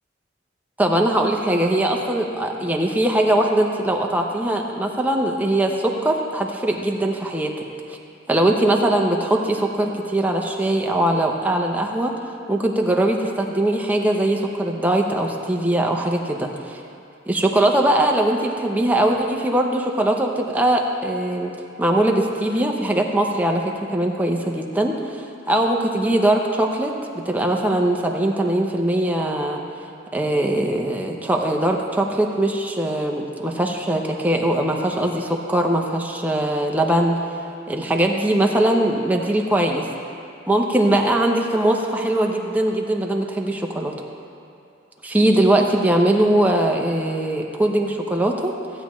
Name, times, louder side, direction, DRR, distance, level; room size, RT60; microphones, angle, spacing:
voice 1, 0.8-8.0 8.3-12.1 12.5-16.8 17.3-21.5 21.8-26.9 27.2-29.6 30.1-37.2 37.7-39.9 40.5-43.9 45.0-48.5, right 1 dB, 10° right, 1 dB, 0.7 m, -21 dB
15.5 x 8.7 x 3.1 m, 2.5 s
head